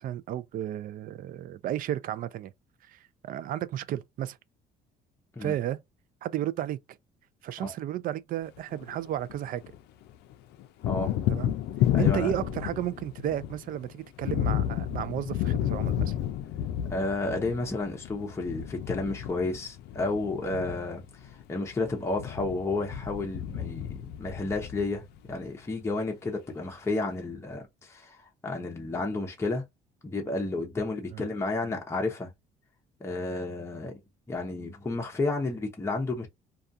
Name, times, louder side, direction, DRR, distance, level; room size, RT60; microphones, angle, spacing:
voice 1, 0.0-2.5 2.9-4.4 5.4-5.8 6.2-6.8 7.4-9.6 11.3-11.5 12.0-16.1 31.1-31.2, right 12 dB, 55° right, 0.4 m, -33 dB
Thunder, 8.6-9.8 10.1-25.3, left 11 dB, 80° left, 0.4 m, -31 dB
voice 2, 11.9-12.3 16.9-21.0 21.5-25.0 25.3-29.6 30.0-32.3 33.0-34.0 34.3-36.3, left 2 dB, 15° left, 0.7 m, -31 dB
2.3 x 2.3 x 2.6 m
cardioid pair, 110°, 17 cm